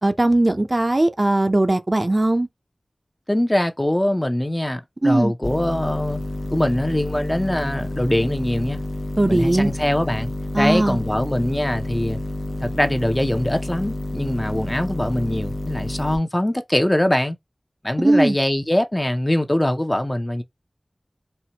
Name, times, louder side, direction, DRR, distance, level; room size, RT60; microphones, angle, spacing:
voice 1, 0.0-2.5 5.0-5.3 9.2-9.7 10.5-11.0 18.0-18.4, right 2 dB, 45° right, 0.5 m, -19 dB
voice 2, 3.3-6.2 6.5-8.8 9.2-12.2 12.6-17.4 17.8-20.4, left 1 dB, 20° left, 0.5 m, -22 dB
sound 1, 5.4-16.2, left 1 dB, 70° left, 0.6 m, -30 dB
4.3 x 2.1 x 2.8 m
wide cardioid pair, 55°, 0 cm